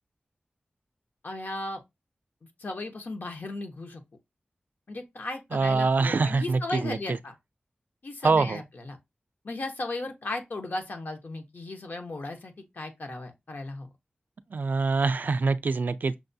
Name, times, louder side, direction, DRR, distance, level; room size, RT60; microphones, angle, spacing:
voice 1, 1.2-1.8 2.6-4.0 4.9-7.3 8.0-9.0 9.4-13.9, left 2 dB, 65° left, 0.9 m, -36 dB
voice 2, 5.5-7.0 8.2-8.6 14.5-16.1, right 4 dB, 65° right, 0.3 m, -24 dB
6.1 x 2.2 x 2.6 m
wide cardioid pair, 70°, 3 cm